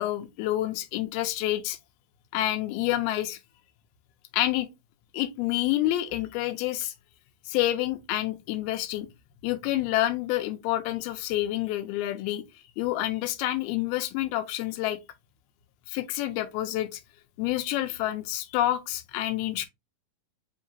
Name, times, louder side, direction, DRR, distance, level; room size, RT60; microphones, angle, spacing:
voice 1, 0.0-1.8 2.3-3.4 4.3-4.7 5.1-6.9 7.5-9.1 9.4-12.4 12.8-15.0 15.9-17.0 17.4-19.7, left 14 dB, 85° left, 2.5 m, -28 dB
5.9 x 2.8 x 2.7 m
omnidirectional pair, 4.4 m